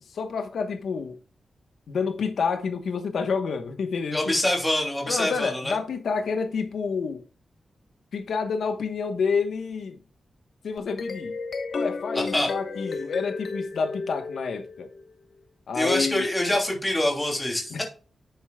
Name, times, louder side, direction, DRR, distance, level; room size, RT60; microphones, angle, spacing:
voice 1, 0.1-1.2 1.9-4.3 5.1-7.2 8.1-10.0 10.6-11.3 11.7-14.9 15.7-16.3 17.7-17.8, left 5 dB, 85° left, 1.1 m, -28 dB
voice 2, 4.1-5.8 12.1-12.5 15.7-17.8, left 1 dB, 10° left, 2.8 m, -25 dB
sound 1, 10.8-15.1, left 4 dB, 55° left, 1.1 m, -32 dB
10.0 x 8.1 x 2.3 m
wide cardioid pair, 165°, 0 cm